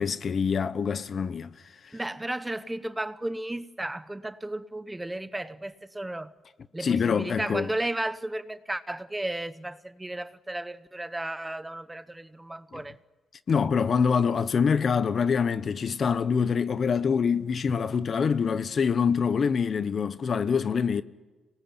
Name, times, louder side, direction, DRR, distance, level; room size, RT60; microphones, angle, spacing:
voice 1, 0.0-1.5 6.8-7.7 12.7-12.8 13.5-21.0, left 6 dB, 45° left, 1.1 m, -25 dB
voice 2, 1.9-6.3 6.7-13.0, right 1 dB, 10° right, 0.9 m, -34 dB
26.0 x 20.0 x 9.9 m
cardioid pair, 90°, 0 cm